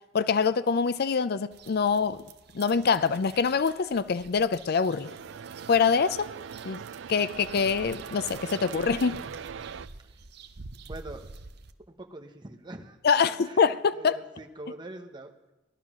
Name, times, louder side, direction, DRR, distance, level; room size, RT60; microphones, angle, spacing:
voice 1, 0.1-2.2 2.5-5.1 5.7-6.3 6.6-6.8 7.1-9.2 13.0-14.2, left 5 dB, 55° left, 14 dB, 0.5 m, -25 dB
sound 1, 1.5-11.7, right 4 dB, 60° right, 0.8 m, -48 dB
sound 2, 5.0-9.9, right 7 dB, 75° right, 0.4 m, -40 dB
voice 2, 10.8-11.4 11.9-15.3, right 2 dB, 25° right, 3 dB, 1.1 m, -44 dB
16.5 x 11.5 x 6.1 m, 1.1 s
head